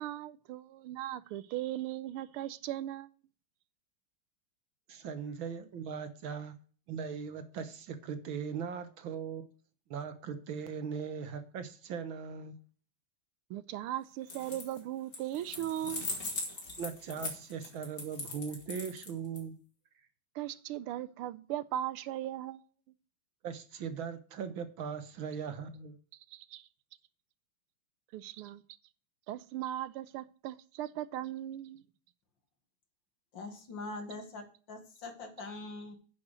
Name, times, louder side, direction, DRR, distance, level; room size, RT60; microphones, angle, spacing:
voice 1, 0.0-3.1 13.5-16.1 20.3-22.6 26.3-26.7 28.1-28.6 29.3-31.8, right 12 dB, 85° right, 1.5 m, -38 dB
voice 2, 4.9-6.5 6.9-9.5 9.9-12.6 16.8-19.6 23.4-26.0, right 6 dB, 65° right, 1.9 m, -39 dB
sound 1, 14.2-14.8 15.1-19.4, left 2 dB, 40° left, 3.3 m, -39 dB
voice 3, 33.3-36.0, left 3 dB, 60° left, 2.3 m, -43 dB
9.9 x 6.1 x 6.4 m
omnidirectional pair, 2.4 m